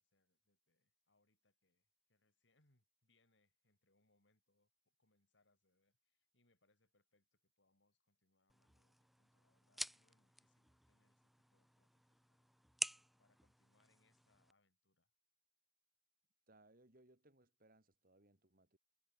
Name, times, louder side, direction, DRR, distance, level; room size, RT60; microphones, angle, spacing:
voice 1, 0.0-12.5 13.2-15.1, left 2 dB, 80° left, 5.2 m, -81 dB
sound 1, 8.5-14.5, equal, ahead, 0.6 m, -50 dB
voice 2, 16.5-18.8, right 2 dB, 50° right, 3.5 m, -69 dB
head